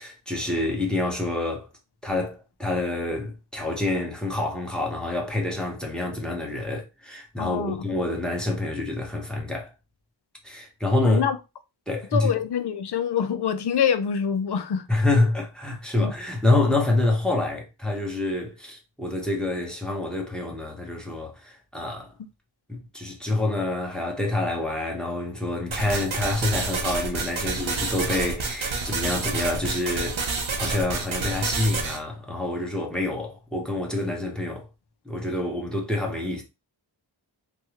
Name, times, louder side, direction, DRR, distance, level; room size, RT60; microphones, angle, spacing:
voice 1, 0.0-1.7 2.0-9.7 10.4-11.2 11.9-12.3 14.9-22.1 22.7-30.2 30.6-34.6 35.0-36.4, left 2 dB, ahead, 1.1 m, -27 dB
voice 2, 7.4-7.8 11.0-11.4 12.1-14.9 16.0-16.1, left 7 dB, 55° left, 0.5 m, -25 dB
sound 1, 25.7-32.0, right 4 dB, 75° right, 0.8 m, -29 dB
3.4 x 2.3 x 3.1 m
wide cardioid pair, 50°, 48 cm